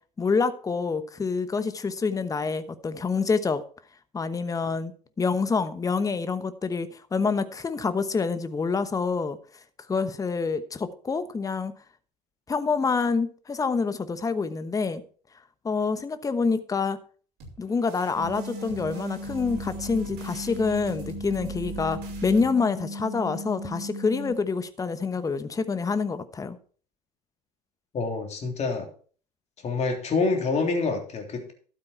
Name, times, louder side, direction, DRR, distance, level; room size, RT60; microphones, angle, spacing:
voice 1, 0.2-3.6 4.1-4.9 5.2-9.4 9.9-11.7 12.5-15.0 15.6-17.0 17.6-26.6, left 4 dB, 15° left, 1.0 m, -27 dB
sound 1, 17.4-22.5, right 6 dB, 50° right, 5.9 m, -42 dB
sound 2, 18.2-24.3, left 1 dB, 5° right, 5.1 m, -37 dB
voice 2, 27.9-28.9 29.6-31.5, left 4 dB, 30° left, 3.4 m, -27 dB
12.5 x 8.6 x 4.5 m
figure-of-eight pair, 75°, 21 cm